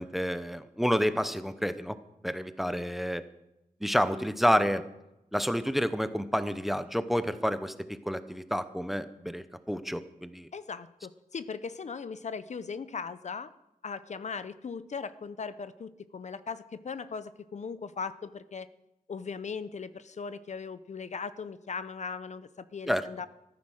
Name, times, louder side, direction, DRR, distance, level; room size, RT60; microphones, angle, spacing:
voice 1, 0.0-2.0 2.2-3.2 3.8-4.8 5.3-10.5 22.9-23.1, equal, ahead, 12 dB, 0.7 m, -29 dB
voice 2, 10.5-13.5 13.8-18.7 19.1-23.3, left 5 dB, 55° left, 13 dB, 0.7 m, -38 dB
14.0 x 13.5 x 6.3 m, 0.90 s
wide cardioid pair, 145°, 14 cm